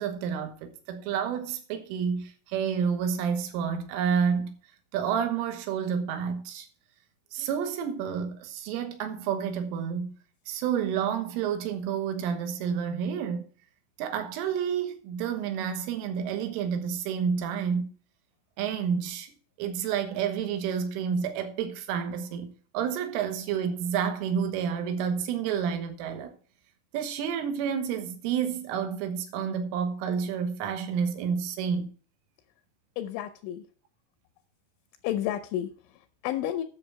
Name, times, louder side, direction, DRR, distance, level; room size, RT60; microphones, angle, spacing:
voice 1, 0.0-4.6 4.9-6.7 7.3-10.1 10.5-13.4 14.0-17.9 18.6-19.3 19.6-26.4 26.9-31.9, right 7 dB, 75° right, 3.6 m, -29 dB
voice 2, 33.0-33.7 35.0-36.6, left 12 dB, 80° left, 2.8 m, -31 dB
10.5 x 7.0 x 4.8 m
omnidirectional pair, 6.0 m